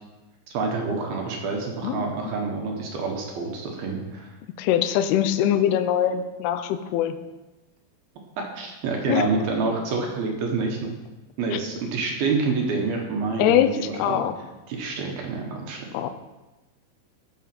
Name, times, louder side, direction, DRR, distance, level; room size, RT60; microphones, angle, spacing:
voice 1, 0.5-4.3 8.4-10.9 11.4-14.2 14.7-15.9, right 4 dB, 65° right, 1 dB, 2.7 m, -27 dB
voice 2, 4.6-7.2 9.1-9.3 11.5-11.6 13.4-14.4 15.9-16.1, left 10 dB, 85° left, 9 dB, 2.3 m, -22 dB
13.5 x 6.3 x 5.9 m, 1.1 s
omnidirectional pair, 5.4 m